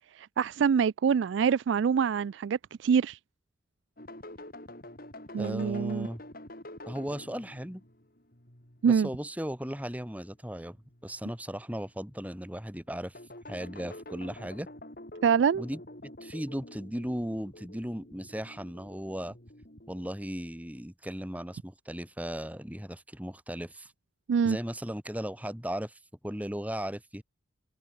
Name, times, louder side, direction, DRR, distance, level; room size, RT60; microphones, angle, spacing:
voice 1, 0.1-3.2 5.3-6.1 8.8-9.1 15.2-15.6 24.3-24.6, right 6 dB, 65° right, 0.3 m, -25 dB
sound 1, 4.0-10.1 10.7-11.3 11.9-12.6 13.1-20.1, left 1 dB, 50° left, 4.8 m, -48 dB
voice 2, 5.4-6.2 6.8-7.8 8.8-10.8 11.0-13.2 13.5-14.7 15.6-19.4 19.9-23.9 24.4-27.2, equal, 10° right, 2.4 m, -37 dB
head